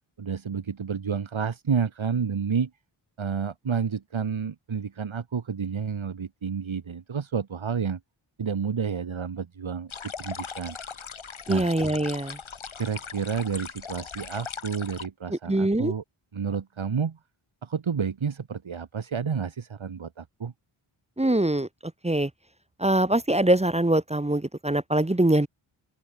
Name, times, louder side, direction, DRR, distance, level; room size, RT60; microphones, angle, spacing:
voice 1, 0.2-2.7 3.2-8.0 8.4-9.9 10.2-10.8 11.5-11.7 12.8-16.0 16.3-17.2 17.6-20.5, right 6 dB, 65° right, 3.9 m, -30 dB
sound 1, 9.9-15.1, left 6 dB, 70° left, 6.0 m, -39 dB
voice 2, 11.5-12.4 15.3-15.9 21.2-21.7 22.0-22.3 22.8-25.5, right 1 dB, 15° right, 1.3 m, -23 dB
open air
cardioid pair, 45°, 50 cm